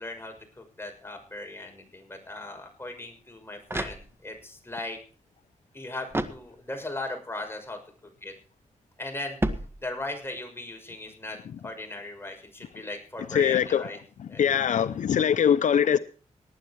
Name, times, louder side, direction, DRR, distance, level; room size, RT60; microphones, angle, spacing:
voice 1, 0.0-5.0 5.7-7.8 8.2-8.3 9.0-9.4 9.8-11.4 11.6-14.0 14.3-14.4, left 2 dB, 20° left, 6.1 m, -38 dB
sound 1, 3.2-4.5 6.1-7.0 9.4-10.3, right 1 dB, 20° right, 1.6 m, -33 dB
voice 2, 13.3-13.9 14.2-16.0, left 8 dB, 75° left, 0.6 m, -22 dB
19.0 x 9.7 x 4.7 m
cardioid pair, 65°, 13 cm